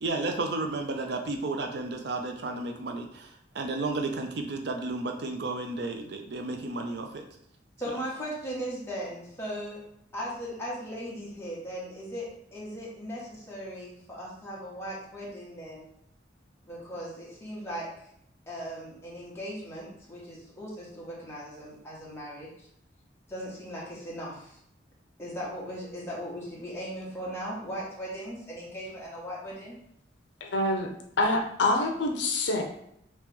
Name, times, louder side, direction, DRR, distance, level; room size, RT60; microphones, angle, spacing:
voice 1, 0.0-7.2, right 2 dB, 60° right, 4 dB, 0.4 m, -32 dB
voice 2, 7.8-9.8 10.1-15.9 16.6-17.9 18.5-22.7 23.3-24.6 25.2-29.7, equal, 15° left, -6 dB, 1.1 m, -38 dB
voice 3, 30.4-30.9 31.2-32.6, left 2 dB, 70° left, 2 dB, 0.6 m, -26 dB
3.0 x 2.9 x 3.4 m, 0.72 s
head